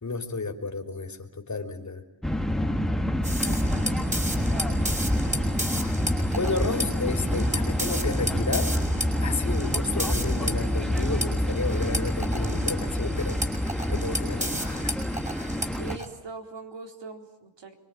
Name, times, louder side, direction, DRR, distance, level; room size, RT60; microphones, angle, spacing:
voice 1, 0.0-2.0 5.5-5.6 6.3-8.7 9.2-15.0, left 3 dB, 40° left, 4 dB, 3.4 m, -32 dB
sound 1, 2.2-16.0, equal, ahead, 1.8 m, -27 dB
sound 2, 3.2-16.1, equal, 15° right, 6.3 m, -32 dB
voice 2, 3.4-3.9 15.8-17.7, right 4 dB, 75° right, 5 dB, 4.2 m, -41 dB
27.0 x 24.0 x 9.0 m, 0.91 s
wide cardioid pair, 100°, 44 cm